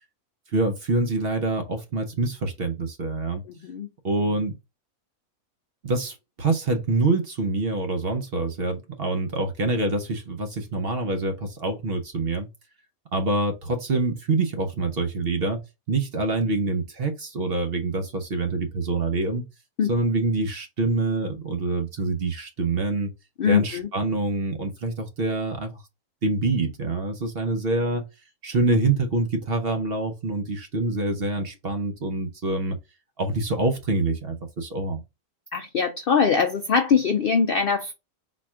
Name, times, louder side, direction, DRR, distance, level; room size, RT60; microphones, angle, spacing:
voice 1, 0.5-3.4 4.0-4.5 5.8-12.5 13.1-15.6 15.9-19.5 19.9-23.1 23.5-25.8 26.2-28.1 28.4-32.8 33.2-35.0, right 2 dB, 50° right, 0.9 m, -26 dB
voice 2, 23.4-23.9 35.5-37.9, left 6 dB, 65° left, 0.5 m, -22 dB
4.2 x 2.4 x 4.3 m
omnidirectional pair, 1.5 m